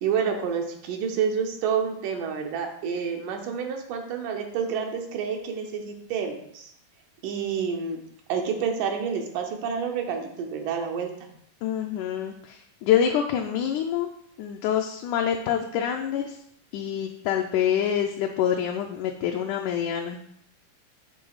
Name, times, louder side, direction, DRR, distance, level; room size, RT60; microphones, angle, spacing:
voice 1, 0.0-6.7 7.2-8.0 8.3-11.1, right 6 dB, 85° right, 2 dB, 2.4 m, -29 dB
voice 2, 11.6-14.1 14.4-16.4 16.7-20.2, left 9 dB, 80° left, 3 dB, 2.0 m, -26 dB
9.1 x 3.1 x 4.8 m, 0.71 s
omnidirectional pair, 3.6 m